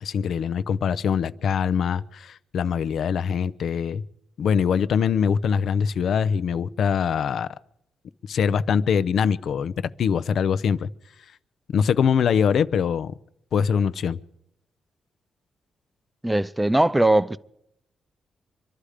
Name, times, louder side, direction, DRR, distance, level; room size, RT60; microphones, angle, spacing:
voice 1, 0.0-4.0 4.4-7.5 8.3-9.7 10.0-10.9 11.7-13.1 13.5-14.2, left 7 dB, 70° left, 0.6 m, -23 dB
voice 2, 16.2-17.4, right 1 dB, 10° right, 0.5 m, -20 dB
25.5 x 11.5 x 5.0 m
cardioid pair, 95°, 0 cm